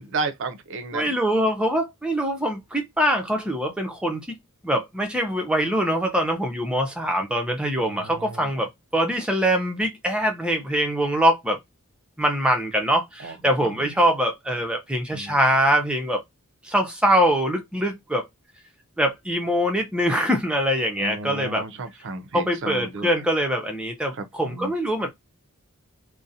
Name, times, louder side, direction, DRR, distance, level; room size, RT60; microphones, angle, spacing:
voice 1, 0.0-1.1 7.8-8.5 13.2-13.4 13.6-14.0 15.1-15.4 21.0-23.2 24.1-24.7, right 3 dB, 55° right, 0.5 m, -33 dB
voice 2, 0.9-4.4 4.6-11.6 12.2-16.2 16.6-18.3 19.0-21.6 22.3-25.1, equal, 5° right, 0.5 m, -23 dB
2.4 x 2.0 x 2.7 m
head